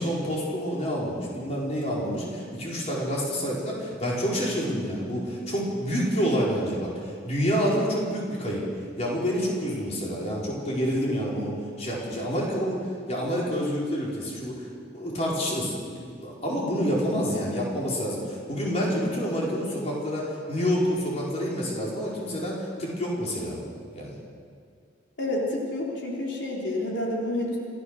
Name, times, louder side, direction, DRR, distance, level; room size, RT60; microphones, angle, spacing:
voice 1, 0.0-8.6 9.0-23.6 23.9-24.2, equal, 35° left, -4 dB, 4.9 m, -28 dB
voice 2, 25.2-27.6, left 1 dB, 80° left, -3 dB, 3.8 m, -29 dB
27.0 x 15.0 x 6.6 m, 2.2 s
head